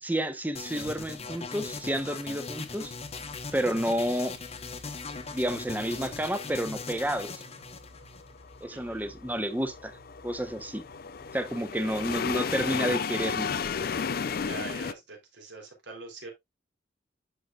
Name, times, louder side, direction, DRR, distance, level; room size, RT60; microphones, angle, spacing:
voice 1, 0.0-2.9 3.5-4.3 5.3-7.4 8.6-10.0 10.2-10.8 11.3-13.5, right 1 dB, 10° right, 0.8 m, -30 dB
sound 1, 0.5-8.6, left 4 dB, 35° left, 1.0 m, -40 dB
sound 2, 2.8-12.4, equal, 50° right, 3.7 m, -54 dB
sound 3, 8.0-14.9, left 6 dB, 55° left, 0.5 m, -33 dB
voice 2, 8.7-9.0 11.7-12.0 14.3-16.3, right 3 dB, 80° right, 3.5 m, -43 dB
11.0 x 4.9 x 2.4 m
head